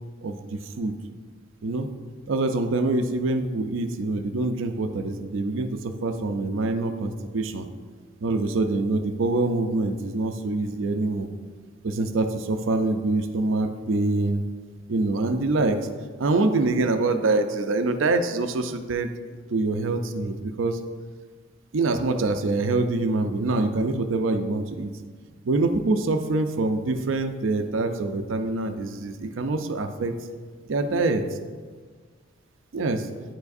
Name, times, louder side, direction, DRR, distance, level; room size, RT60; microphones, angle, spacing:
voice 1, 0.2-0.9 1.6-1.9 2.3-7.7 8.2-11.3 11.8-14.4 14.9-15.9 16.2-19.1 19.5-20.8 21.7-24.9 25.4-30.2 30.7-31.3 32.7-33.1, right 2 dB, 70° right, 8 dB, 0.5 m, -25 dB
9.1 x 4.7 x 2.6 m, 1.5 s
head